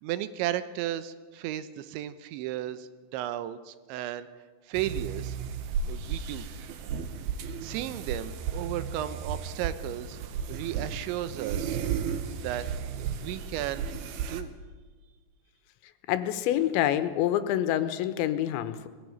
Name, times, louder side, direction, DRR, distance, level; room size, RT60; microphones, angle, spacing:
voice 1, 0.0-4.3 4.7-5.4 5.9-6.5 7.6-10.2 10.5-11.8 12.4-12.6 13.0-13.9 14.3-14.5, right 12 dB, 90° right, 13 dB, 3.2 m, -34 dB
sound 1, 4.7-14.4, right 7 dB, 70° right, 2.7 m, -34 dB
voice 2, 16.1-18.9, left 12 dB, 85° left, 11 dB, 3.3 m, -27 dB
20.0 x 15.0 x 9.4 m, 1.4 s
omnidirectional pair, 5.1 m